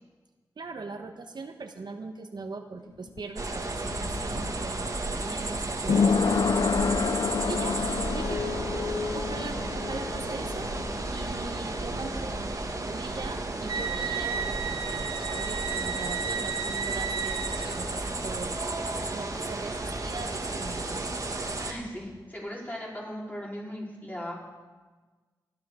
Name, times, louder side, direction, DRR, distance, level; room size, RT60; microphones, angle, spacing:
voice 1, 0.6-6.8 7.5-7.8 8.1-10.7 11.1-18.6 19.1-21.1, right 4 dB, 60° right, 4 dB, 1.1 m, -40 dB
sound 1, 2.8-14.3 14.6-14.7, left 5 dB, 55° left, 0.5 m, -30 dB
sound 2, 3.4-21.7, right 2 dB, 40° right, 1.6 m, -33 dB
sound 3, 13.7-18.2, right 7 dB, 80° right, 1.0 m, -33 dB
voice 2, 21.6-24.3, equal, 20° left, -4 dB, 4.7 m, -39 dB
18.5 x 12.0 x 5.0 m, 1.3 s
wide cardioid pair, 70°, 8 cm